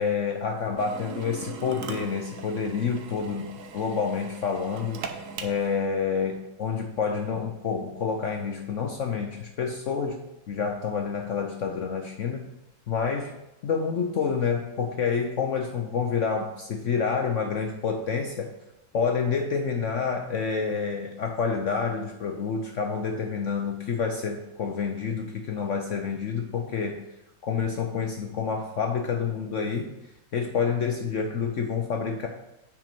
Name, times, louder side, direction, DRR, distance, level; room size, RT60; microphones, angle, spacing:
voice 1, 0.0-5.0 5.4-10.2 10.5-12.5 12.9-13.3 13.6-18.5 18.9-27.0 27.4-29.9 30.3-32.3, left 6 dB, 70° left, 3 dB, 0.7 m, -28 dB
Drill, 0.8-5.9, right 5 dB, 65° right, 0.8 m, -40 dB
6.0 x 5.2 x 6.9 m, 0.88 s
omnidirectional pair, 2.1 m